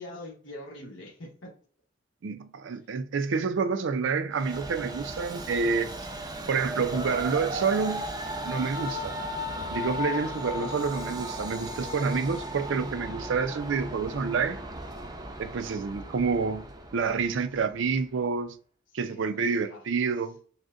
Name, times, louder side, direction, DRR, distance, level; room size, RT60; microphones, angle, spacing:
voice 1, 0.0-1.5 18.9-19.8 20.1-20.3, left 1 dB, 70° left, 1.1 m, -44 dB
voice 2, 2.2-5.9 6.5-8.0 8.4-9.1 9.7-14.6 15.4-16.7 16.9-18.6 18.9-20.4, right 5 dB, 70° right, 0.4 m, -28 dB
Train, 4.3-17.8, equal, 20° right, 0.5 m, -36 dB
6.2 x 2.1 x 2.5 m
head